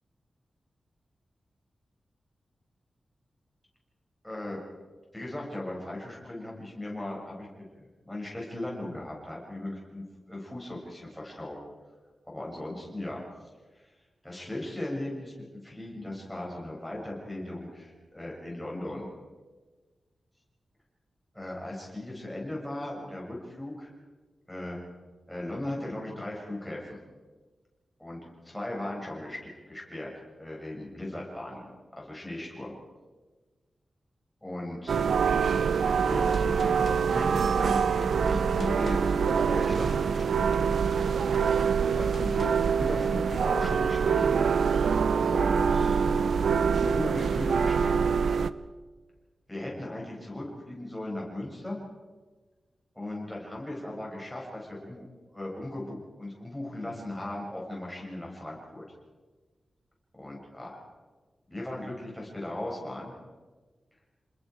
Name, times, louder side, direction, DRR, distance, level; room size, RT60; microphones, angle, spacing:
voice 1, 4.2-4.6 5.1-7.5 7.8-11.6 12.3-13.2 13.7-13.9 14.2-19.1 21.3-23.9 24.5-24.8 25.3-27.0 28.0-30.1 30.4-31.7 32.0-32.7 34.4-35.0 36.0-39.9 41.0-44.4 45.3-46.1 46.7-48.1 49.5-51.8 52.9-55.0 55.3-58.8 60.1-60.8 61.5-63.1, left 1 dB, 5° left, -3 dB, 6.7 m, -37 dB
sound 1, 34.9-48.5, right 6 dB, 80° right, 0.7 m, -25 dB
Gunshot gunfire, 36.3-42.8, left 4 dB, 50° left, 1.4 m, -46 dB
28.5 x 21.0 x 4.9 m, 1.3 s
wide cardioid pair, 155°, 0 cm